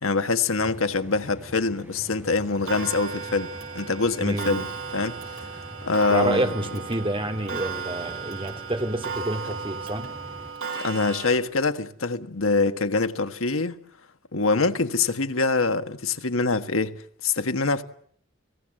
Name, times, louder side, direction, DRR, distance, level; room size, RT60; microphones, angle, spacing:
voice 1, 0.0-4.7 4.9-5.2 5.8-6.5 10.8-13.8 14.3-16.9 17.2-17.8, left 3 dB, 80° left, 1.5 m, -24 dB
sound 1, 0.6-10.5, equal, 10° right, 6.7 m, -44 dB
Clock, 2.7-11.4, right 5 dB, 75° right, 5.8 m, -35 dB
voice 2, 4.2-4.6 6.1-10.1, right 1 dB, 25° right, 2.6 m, -28 dB
30.0 x 19.5 x 7.7 m
head